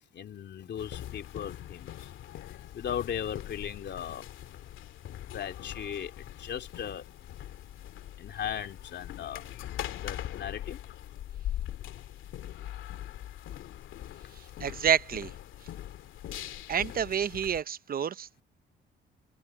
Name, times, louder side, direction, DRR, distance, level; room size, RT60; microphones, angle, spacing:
voice 1, 0.1-2.5 2.7-4.3 5.3-7.0 8.2-9.4 9.9-10.8, left 9 dB, 60° left, 2.8 m, -37 dB
sound 1, 0.8-17.6, left 12 dB, 80° left, 2.4 m, -41 dB
voice 2, 14.6-15.3 16.7-18.4, right 8 dB, 50° right, 0.8 m, -28 dB
cardioid pair, 90°, 20 cm